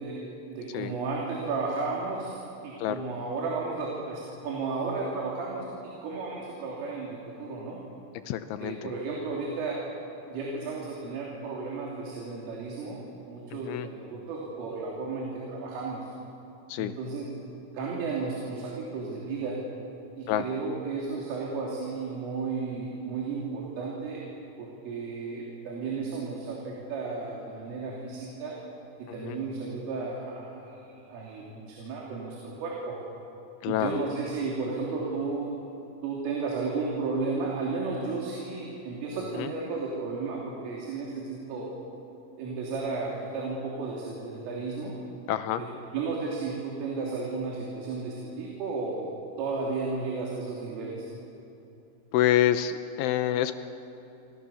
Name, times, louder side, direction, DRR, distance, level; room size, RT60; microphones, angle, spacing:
voice 1, 0.0-2.4 2.6-7.8 8.6-9.8 10.3-16.1 16.8-17.3 17.7-19.6 20.2-24.2 24.6-28.6 29.0-33.0 33.7-35.5 36.0-41.7 42.4-45.0 45.6-45.7 45.9-49.1 49.4-51.1, right 4 dB, 80° right, -3 dB, 5.6 m, -33 dB
voice 2, 8.3-8.9 13.6-13.9 16.7-16.9 20.3-20.4 29.2-29.4 33.6-34.0 39.4-39.5 45.3-45.6 52.1-53.6, left 12 dB, 80° left, 10 dB, 3.1 m, -27 dB
30.0 x 25.5 x 7.1 m, 2.8 s
omnidirectional pair, 5.7 m